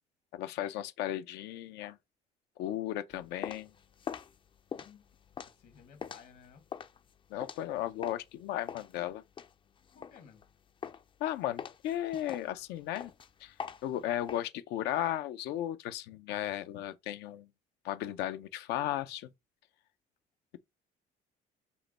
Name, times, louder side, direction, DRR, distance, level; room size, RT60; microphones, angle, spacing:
voice 1, 0.3-2.0 2.6-3.7 7.3-9.2 11.2-13.1 13.4-13.5 13.8-17.5 17.8-19.3, left 12 dB, 90° left, 0.6 m, -35 dB
sound 1, 3.1-8.3 8.7-10.5 10.8-11.2 11.6-14.4, left 7 dB, 30° left, 0.4 m, -43 dB
voice 2, 4.8-5.1 5.6-6.7 9.9-10.5, left 7 dB, 70° left, 1.4 m, -56 dB
5.5 x 2.2 x 4.1 m
cardioid pair, 110°, 17 cm